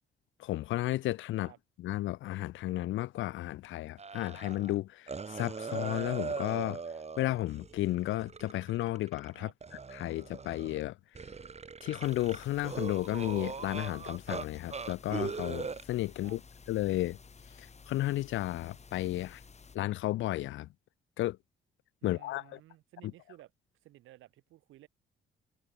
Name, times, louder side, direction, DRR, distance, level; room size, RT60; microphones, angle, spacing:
voice 1, 0.4-1.5 1.8-6.8 7.2-9.5 9.9-10.9 11.8-16.4 16.7-17.2 17.9-19.4 19.7-20.7 21.2-21.4 22.0-22.6, left 16 dB, 80° left, 0.5 m, -33 dB
sound 1, 4.0-4.8 5.1-9.3 9.6-10.8 11.1-14.5 14.7-15.8, right 5 dB, 35° right, 3.8 m, -40 dB
sound 2, 12.0-19.8, left 5 dB, 35° left, 5.8 m, -54 dB
voice 2, 22.0-23.5 23.8-24.9, right 15 dB, 85° right, 4.9 m, -55 dB
cardioid pair, 90°, 20 cm